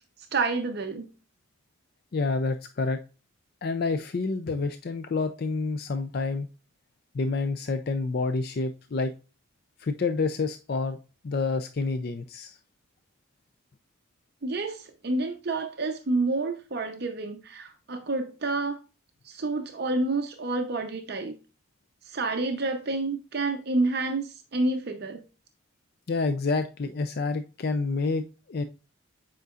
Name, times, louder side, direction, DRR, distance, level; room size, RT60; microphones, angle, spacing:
voice 1, 0.3-1.1 14.4-18.8 19.2-21.4 22.0-25.2, right 3 dB, 50° right, 0.7 m, -29 dB
voice 2, 2.1-3.0 3.6-6.5 7.1-9.1 9.8-11.0 11.2-12.6 26.1-28.6, left 3 dB, 50° left, 0.4 m, -28 dB
8.1 x 5.1 x 2.4 m
head